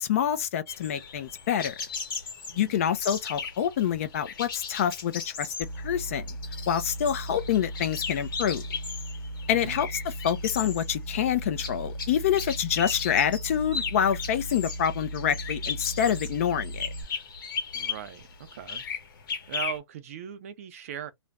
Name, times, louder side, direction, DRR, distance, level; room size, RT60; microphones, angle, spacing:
voice 1, 0.0-1.7 2.6-6.3 6.7-8.6 9.5-16.9, left 9 dB, 30° left, 0.4 m, -27 dB
sound 1, 0.7-19.8, left 6 dB, 50° left, 1.1 m, -37 dB
voice 2, 2.5-2.8 9.5-9.8 17.7-18.8 19.5-21.1, right 10 dB, 35° right, 0.4 m, -39 dB
sound 2, 5.6-17.0, right 1 dB, 5° left, 1.1 m, -37 dB
2.5 x 2.0 x 3.2 m
hypercardioid pair, 165°, 14 cm